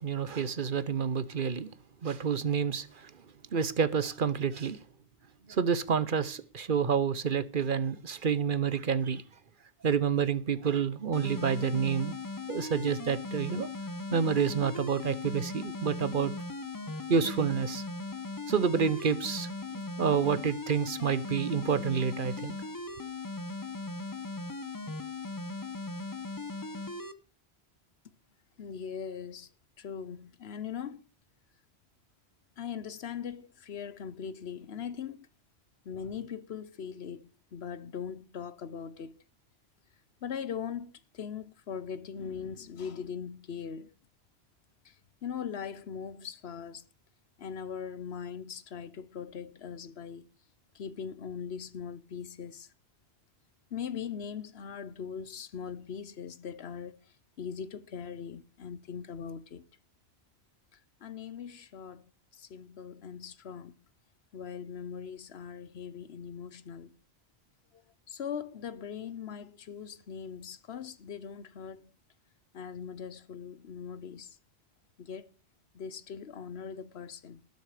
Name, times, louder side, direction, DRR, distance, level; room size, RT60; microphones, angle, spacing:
voice 1, 0.0-1.7 2.0-3.1 3.5-4.8 5.5-9.2 9.8-12.2 12.5-13.7 14.1-16.3 17.1-17.8 18.5-22.5, right 6 dB, 55° right, 1.0 m, -29 dB
sound 1, 11.1-27.1, left 3 dB, 20° left, 0.8 m, -38 dB
voice 2, 28.6-29.5 29.8-31.0 32.6-35.3 35.8-39.1 40.2-43.9 44.8-44.9 45.2-46.8 47.4-50.2 50.7-52.7 53.7-57.0 57.4-59.7 61.0-62.0 62.4-63.7 64.3-66.9 68.1-71.9 72.5-74.4 75.0-75.3 75.7-77.4, left 7 dB, 80° left, 1.1 m, -40 dB
19.0 x 6.7 x 4.9 m
omnidirectional pair, 1.1 m